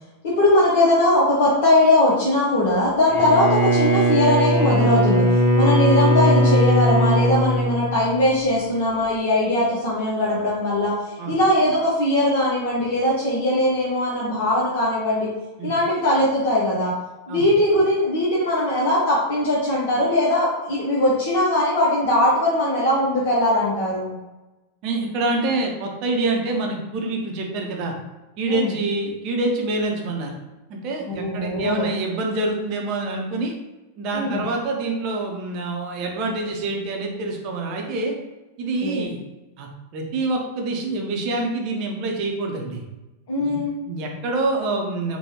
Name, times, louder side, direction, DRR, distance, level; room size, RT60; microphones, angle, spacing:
voice 1, 0.2-5.3 5.5-15.3 15.6-16.9 17.3-24.2 28.5-28.7 31.1-31.9 34.1-34.4 38.8-39.1 43.3-43.8, left 1 dB, 55° left, -6 dB, 0.7 m, -20 dB
Bowed string instrument, 3.1-8.4, equal, 35° left, 1.3 m, -19 dB
voice 2, 24.8-27.9 28.4-30.4 30.7-33.5 34.0-38.2 38.6-39.2 39.6-42.8 43.4-45.2, right 2 dB, 40° right, 1 dB, 0.6 m, -26 dB
3.3 x 2.2 x 2.8 m, 1.1 s
figure-of-eight pair, 90°, 0 cm